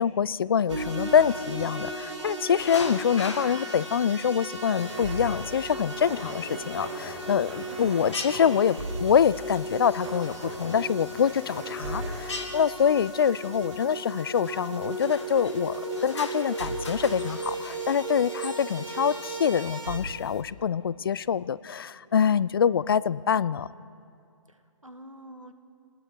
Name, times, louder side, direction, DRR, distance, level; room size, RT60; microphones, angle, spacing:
voice 1, 0.0-23.7, left 7 dB, 45° left, 20 dB, 0.5 m, -25 dB
sound 1, 0.7-20.0, right 2 dB, 70° right, 4.1 m, -36 dB
sound 2, 2.6-20.4, left 3 dB, 60° left, 2.4 m, -44 dB
voice 2, 2.6-3.2 7.2-7.9 24.5-25.5, right 1 dB, 90° right, 9 dB, 1.7 m, -47 dB
sound 3, 4.8-12.7, right 1 dB, 30° right, 7.0 m, -42 dB
27.5 x 19.5 x 5.0 m, 2.4 s
figure-of-eight pair, 130°, 16 cm